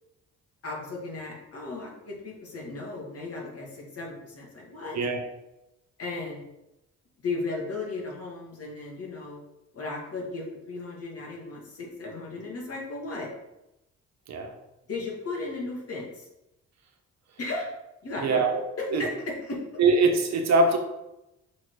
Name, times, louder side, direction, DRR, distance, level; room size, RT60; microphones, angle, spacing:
voice 1, 0.6-5.0 6.0-6.4 7.2-9.4 9.7-13.3 14.9-16.3 17.4-17.7 18.0-18.5 18.8-19.6, left 3 dB, 50° left, -2 dB, 2.4 m, -35 dB
voice 2, 18.2-18.6 18.9-19.0 19.8-20.8, right 3 dB, 60° right, 4 dB, 1.2 m, -22 dB
6.0 x 4.2 x 4.9 m, 0.92 s
cardioid pair, 90°, 30 cm